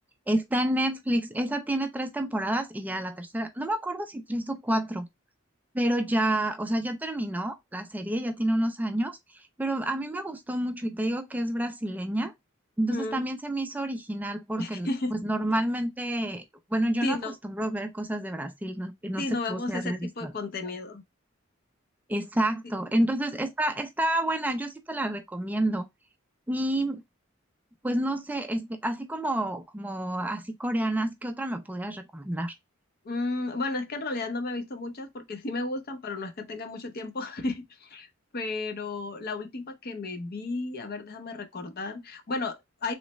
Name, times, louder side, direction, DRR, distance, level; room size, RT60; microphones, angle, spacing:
voice 1, 0.3-5.1 5.7-12.3 12.8-16.4 16.7-20.3 22.1-25.9 26.5-27.0 27.8-32.5, right 1 dB, 10° right, 0.3 m, -29 dB
voice 2, 12.9-13.2 14.6-15.1 17.0-17.3 19.2-21.0 33.0-38.1 38.3-42.9, left 2 dB, 50° left, 0.7 m, -33 dB
3.1 x 3.1 x 3.0 m
head